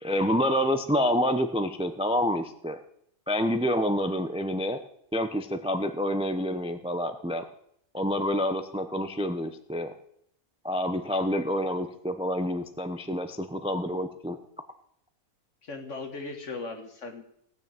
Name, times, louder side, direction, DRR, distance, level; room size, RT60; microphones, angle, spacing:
voice 1, 0.0-2.8 3.3-4.8 5.1-7.4 7.9-9.9 10.6-14.4, equal, 5° right, 8 dB, 0.6 m, -28 dB
voice 2, 15.6-17.2, left 3 dB, 55° left, 5 dB, 2.1 m, -38 dB
17.0 x 6.4 x 8.9 m, 0.71 s
omnidirectional pair, 1.6 m